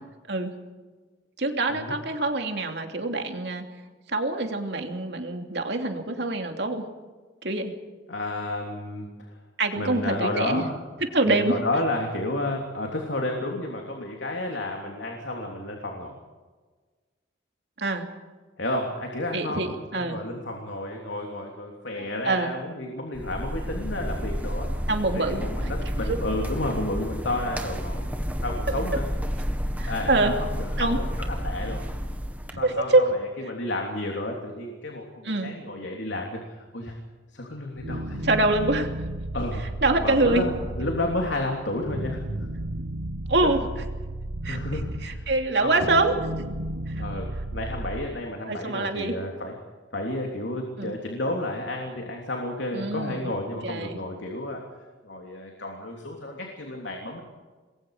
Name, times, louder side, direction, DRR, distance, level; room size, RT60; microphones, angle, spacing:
voice 1, 1.4-3.6 4.1-6.8 7.4-7.7 9.6-10.7 11.0-11.5 17.8-18.1 19.3-19.7 19.9-20.2 22.0-22.5 24.9-25.7 26.1-26.2 29.8-30.3 30.8-31.0 32.5-33.0 35.2-35.5 38.2-38.9 39.8-40.5 43.3-43.6 44.4-44.6 45.0-46.1 46.9-47.0 48.5-49.1 50.8-50.9 52.7-53.3 53.6-54.0, right 2 dB, 65° right, 4 dB, 2.9 m, -25 dB
voice 2, 8.1-9.3 9.8-10.8 11.2-16.1 18.6-24.7 25.1-28.1 28.4-29.1 29.8-31.8 32.6-36.9 37.3-38.3 39.3-39.7 39.9-42.2 43.4-43.6 44.4-45.3 45.6-45.9 47.0-49.6 49.9-54.6 55.0-57.2, left 1 dB, 80° left, 1 dB, 3.2 m, -31 dB
sound 1, 23.1-32.5, equal, 10° right, 1.7 m, -30 dB
sound 2, 37.8-48.1, right 1 dB, 85° right, 1.4 m, -33 dB
27.5 x 21.5 x 5.1 m, 1.4 s
head